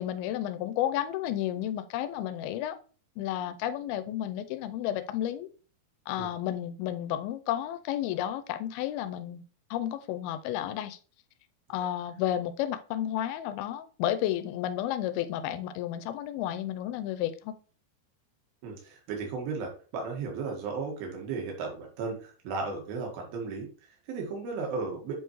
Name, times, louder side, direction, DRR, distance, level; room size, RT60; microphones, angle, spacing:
voice 1, 0.0-2.8 3.2-5.5 6.1-9.4 9.7-11.0 11.7-17.6, left 12 dB, 85° left, 11 dB, 2.5 m, -32 dB
voice 2, 18.6-25.1, right 4 dB, 75° right, 1 dB, 3.4 m, -35 dB
8.0 x 4.6 x 3.0 m, 0.37 s
omnidirectional pair, 4.4 m